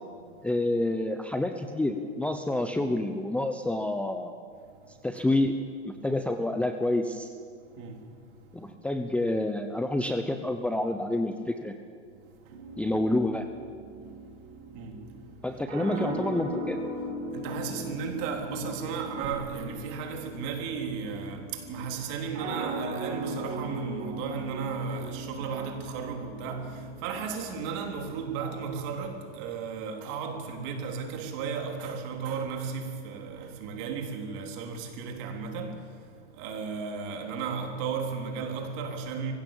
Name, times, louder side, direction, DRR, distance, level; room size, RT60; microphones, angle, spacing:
voice 1, 0.4-4.3 5.0-5.5 5.9-7.3 8.5-11.7 12.8-13.4 15.4-16.8, left 1 dB, 5° left, 0.8 m, -28 dB
voice 2, 4.7-5.2 7.6-8.7 12.2-12.8 14.0-15.4 15.9-16.1 17.2-39.3, right 5 dB, 50° right, 3.5 m, -35 dB
sound 1, 12.5-28.3, right 1 dB, 70° right, 6.2 m, -39 dB
23.0 x 16.0 x 7.3 m
hypercardioid pair, 125°, 36 cm